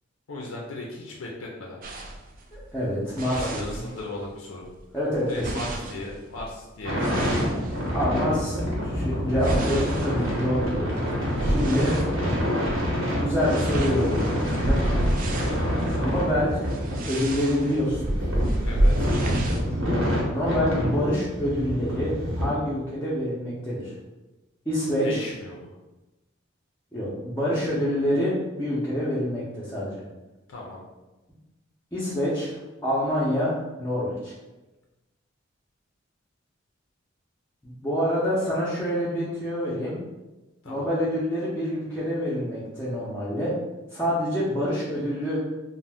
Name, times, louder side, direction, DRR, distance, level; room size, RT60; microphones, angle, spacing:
voice 1, 0.3-1.8 3.3-4.7 5.3-7.5 11.8-12.4 15.9-16.2 18.6-19.1 25.0-25.7 30.5-30.8 40.6-40.9, left 2 dB, 85° left, -2 dB, 0.5 m, -37 dB
sound 1, 1.8-4.3 4.6-8.3 8.8-12.1 12.6-12.8 13.1-19.6, right 1 dB, 45° right, 0.3 m, -30 dB
voice 2, 2.5-3.6 4.9-5.7 7.9-10.9 11.4-11.9 13.2-14.8 15.9-16.6 17.1-18.2 19.2-19.8 20.3-23.9 24.7-25.2 26.9-30.0 31.9-34.3 37.6-40.0 40.6-43.5 43.9-45.4, equal, 10° left, -9 dB, 0.5 m, -27 dB
sound 2, 6.8-22.4, equal, 85° right, 1.0 m, -27 dB
2.6 x 2.1 x 3.3 m, 1.1 s
head